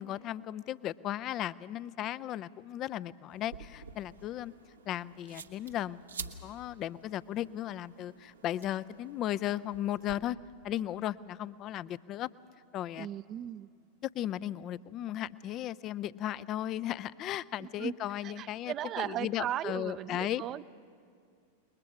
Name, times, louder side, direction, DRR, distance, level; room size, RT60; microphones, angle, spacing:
voice 1, 0.0-4.5 4.9-10.4 10.6-12.3 12.7-13.1 14.1-20.4, left 12 dB, 35° left, 17 dB, 0.5 m, -36 dB
sound 1, 3.3-10.1, right 5 dB, 75° right, 1.1 m, -49 dB
voice 2, 13.0-13.7 17.6-18.0 18.2-20.7, right 11 dB, 30° right, 17 dB, 0.6 m, -37 dB
28.5 x 21.0 x 6.0 m, 2.4 s
figure-of-eight pair, 90°, 0 cm